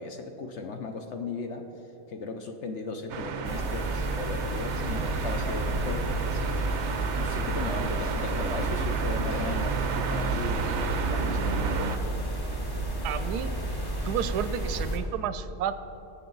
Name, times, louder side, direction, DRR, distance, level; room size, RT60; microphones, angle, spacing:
voice 1, 0.0-1.6 2.1-6.6 7.2-12.0, left 4 dB, 60° left, 5 dB, 0.9 m, -37 dB
sound 1, 3.1-12.0, right 6 dB, 60° right, 0.8 m, -32 dB
sound 2, 3.4-15.0, right 1 dB, 15° left, 1.2 m, -31 dB
voice 2, 13.0-13.6 14.0-15.8, right 9 dB, 90° right, 12 dB, 1.1 m, -31 dB
18.5 x 7.1 x 3.9 m, 2.9 s
omnidirectional pair, 1.6 m